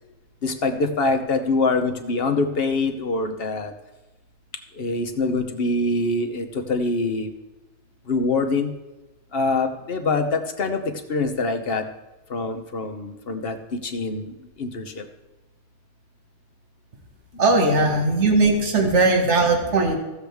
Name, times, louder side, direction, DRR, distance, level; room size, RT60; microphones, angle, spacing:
voice 1, 0.4-3.7 4.7-7.3 8.1-8.7 9.3-11.9 12.3-13.6 13.8-15.0 17.3-17.4, left 3 dB, 55° left, 6 dB, 1.1 m, -24 dB
voice 2, 17.4-20.0, right 3 dB, 80° right, 2 dB, 1.8 m, -19 dB
15.5 x 7.1 x 3.5 m, 1.1 s
omnidirectional pair, 1.2 m